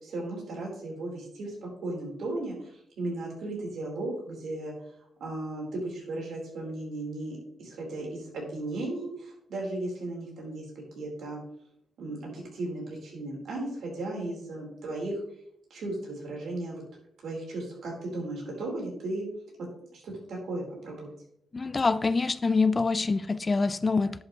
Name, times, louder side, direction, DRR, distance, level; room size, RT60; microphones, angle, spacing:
voice 1, 0.0-4.7 5.2-11.4 12.0-15.2 15.7-16.8 17.2-19.3 19.9-21.1, right 2 dB, 75° right, 4.3 m, -36 dB
voice 2, 21.5-24.2, left 4 dB, 30° left, 0.3 m, -25 dB
11.0 x 7.9 x 3.2 m
cardioid pair, 115°, 0 cm